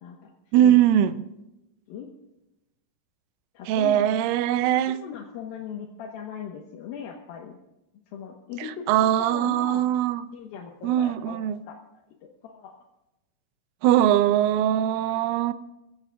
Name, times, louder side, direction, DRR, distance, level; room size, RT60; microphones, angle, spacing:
voice 1, 0.0-0.8 1.9-2.1 3.5-4.1 4.9-7.6 8.1-8.9 9.2-9.8 10.3-11.4 11.7-12.8, left 8 dB, 70° left, 2.4 m, -39 dB
voice 2, 0.5-1.2 3.7-5.0 8.9-10.2 10.8-11.6 13.8-15.5, right 11 dB, 90° right, 3.2 m, -21 dB
23.5 x 16.0 x 2.4 m
omnidirectional pair, 5.5 m